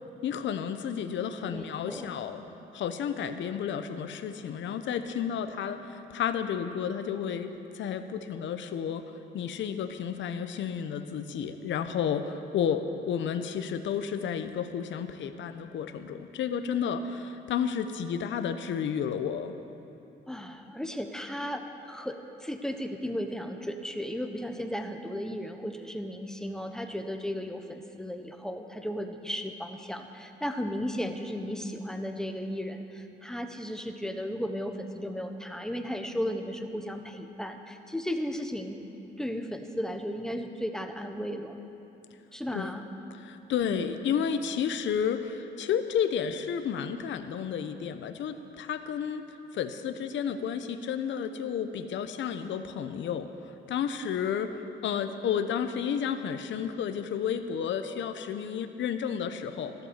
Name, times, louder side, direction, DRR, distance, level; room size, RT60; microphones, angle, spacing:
voice 1, 0.2-2.4 2.7-9.0 9.3-19.5 42.5-42.8 43.2-49.3 49.5-53.3 53.7-59.7, left 7 dB, 70° left, 9 dB, 0.9 m, -31 dB
voice 2, 1.5-2.2 20.3-38.8 39.2-41.6 42.3-42.8 43.6-43.9, equal, 5° left, 5 dB, 1.2 m, -35 dB
13.5 x 11.5 x 7.4 m, 2.9 s
cardioid pair, 90°, 20 cm